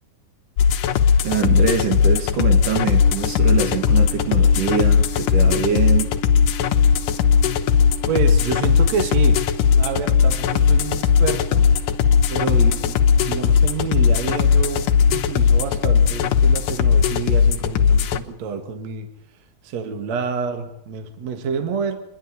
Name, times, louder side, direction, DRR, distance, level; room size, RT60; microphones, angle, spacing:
sound 1, 0.6-18.2, left 7 dB, 75° left, 2.6 m, -17 dB
voice 1, 1.2-6.1, right 7 dB, 70° right, 5 dB, 3.5 m, -23 dB
sound 2, 3.0-17.1, equal, 50° left, 3.1 m, -38 dB
voice 2, 8.1-9.4 9.7-11.7 12.3-19.1 19.6-22.0, right 6 dB, 55° right, 7 dB, 2.7 m, -28 dB
27.0 x 11.5 x 9.6 m, 0.78 s
omnidirectional pair, 3.9 m